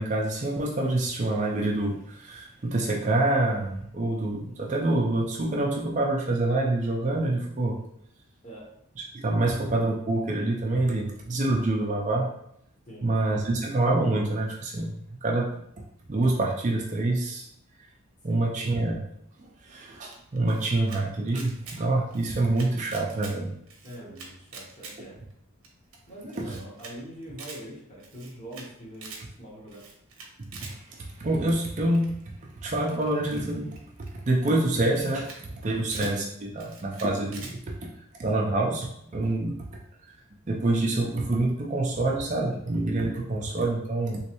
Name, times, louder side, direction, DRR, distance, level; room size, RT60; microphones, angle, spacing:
voice 1, 0.0-7.8 9.1-12.3 13.0-15.5 16.1-17.5 18.2-19.0 19.6-23.5 26.5-26.6 30.6-30.8 31.2-32.1 32.6-33.8 34.1-37.6 38.2-39.6 40.5-44.2, right 2 dB, 35° right, -1 dB, 0.4 m, -26 dB
voice 2, 12.9-13.5 18.3-18.4 23.8-25.2 26.1-29.1 29.4-29.8 35.7-35.8, right 1 dB, 30° left, -4 dB, 1.0 m, -43 dB
Camera, 20.1-21.0 21.3-21.8 22.1-23.3 23.7-24.9 25.3-25.4 25.6-25.7 25.9-26.0 26.3-26.9 27.2-27.6 28.0-28.7 28.9-29.2 29.7-30.7 31.9-32.2 32.8-34.1 34.6-34.7 34.9-35.4 35.6-36.1 36.6-37.5, right 4 dB, 65° right, 0.7 m, -44 dB
3.2 x 3.1 x 3.0 m, 0.74 s
head